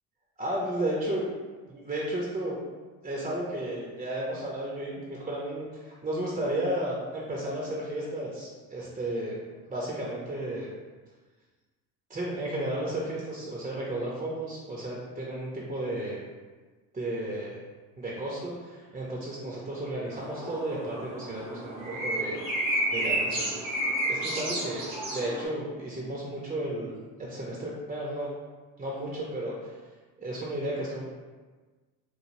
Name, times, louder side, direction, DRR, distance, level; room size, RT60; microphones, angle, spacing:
voice 1, 0.4-1.2 1.7-2.6 3.0-9.4 9.7-10.7 12.1-16.2 16.9-17.6 18.0-22.4 22.9-23.5 24.0-24.8 25.1-28.3 28.8-29.7 30.2-31.0, right 1 dB, 20° right, -4 dB, 0.7 m, -33 dB
sound 1, 20.1-25.4, right 1 dB, 85° right, 1.0 m, -31 dB
3.2 x 2.2 x 2.6 m, 1.3 s
hypercardioid pair, 70°, 40 cm